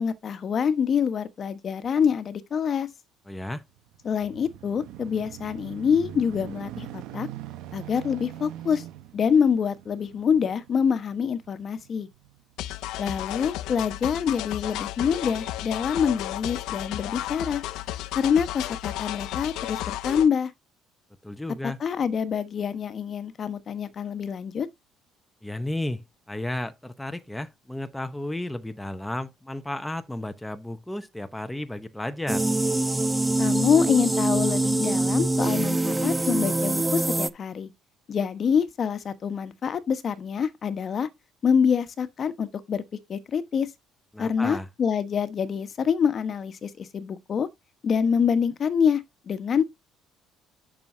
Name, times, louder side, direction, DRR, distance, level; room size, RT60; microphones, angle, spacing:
voice 1, 0.0-2.9 4.0-7.3 7.7-8.8 9.1-12.1 13.0-17.6 18.1-20.5 21.6-24.7 33.4-37.7 38.1-41.1 41.4-42.8 43.1-43.7 44.2-47.5 47.8-49.6, left 7 dB, 40° left, 1.2 m, -26 dB
voice 2, 3.3-3.6 21.2-21.8 25.4-32.5 44.1-44.7, left 1 dB, 5° left, 0.8 m, -33 dB
sound 1, 3.6-12.4 13.0-13.1, right 13 dB, 80° right, 1.0 m, -42 dB
sound 2, 12.6-20.3, left 15 dB, 75° left, 0.7 m, -33 dB
sound 3, 32.3-37.3, right 2 dB, 10° right, 0.5 m, -24 dB
10.5 x 6.2 x 2.7 m
cardioid pair, 115°, 0 cm